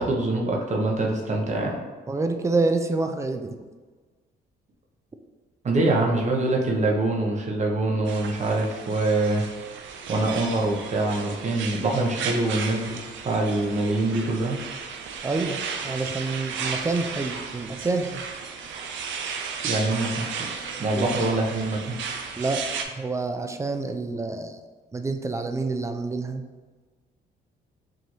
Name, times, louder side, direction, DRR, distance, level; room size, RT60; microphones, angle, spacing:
voice 1, 0.0-1.8 5.6-9.4 10.1-14.6 19.6-20.5 20.8-22.0, right 2 dB, 35° right, -1 dB, 0.8 m, -24 dB
voice 2, 2.1-3.6 15.2-18.2 20.9-21.2 22.4-24.6 24.9-26.4, right 3 dB, 15° right, 6 dB, 0.3 m, -27 dB
sound 1, 8.1-22.8, right 6 dB, 75° right, 0.5 m, -34 dB
4.7 x 2.6 x 3.0 m, 1.4 s
cardioid pair, 90°, 20 cm